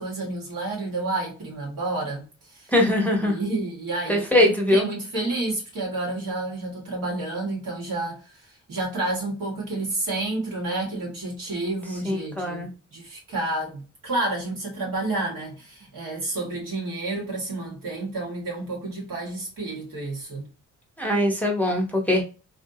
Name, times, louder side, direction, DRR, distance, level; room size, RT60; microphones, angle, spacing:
voice 1, 0.0-2.7 3.2-8.4 8.7-20.5, right 2 dB, 85° right, 1.7 m, -30 dB
voice 2, 2.7-3.4 4.1-4.9 12.0-12.7 21.0-22.2, left 1 dB, 5° left, 0.7 m, -21 dB
3.3 x 2.6 x 2.6 m
wide cardioid pair, 145°, 32 cm